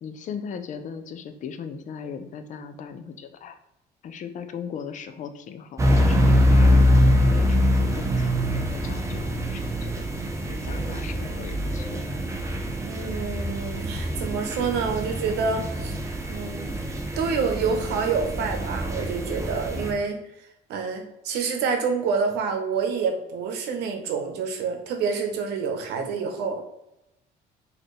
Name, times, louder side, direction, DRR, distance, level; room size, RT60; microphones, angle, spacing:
voice 1, 0.0-3.6 4.0-12.0, left 7 dB, 50° left, 7 dB, 0.5 m, -38 dB
sound 1, 5.8-19.9, equal, 15° right, 0.6 m, -24 dB
voice 2, 12.8-16.0 16.3-20.2 20.7-26.6, right 5 dB, 85° right, 4 dB, 0.8 m, -27 dB
4.2 x 2.8 x 3.1 m, 0.86 s
cardioid pair, 110°, 17 cm